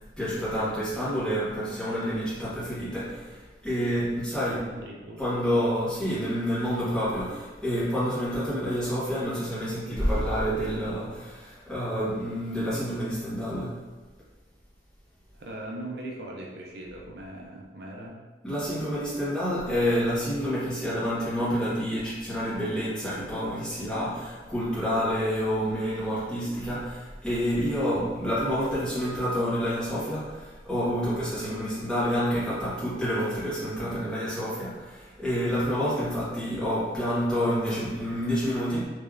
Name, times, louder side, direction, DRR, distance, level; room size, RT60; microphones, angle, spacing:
voice 1, 0.2-4.7 5.2-13.8 18.4-38.9, equal, 5° left, -12 dB, 1.3 m, -28 dB
voice 2, 4.7-5.3 15.3-18.2, right 1 dB, 65° right, -2 dB, 0.5 m, -40 dB
3.4 x 3.1 x 2.4 m, 1.3 s
head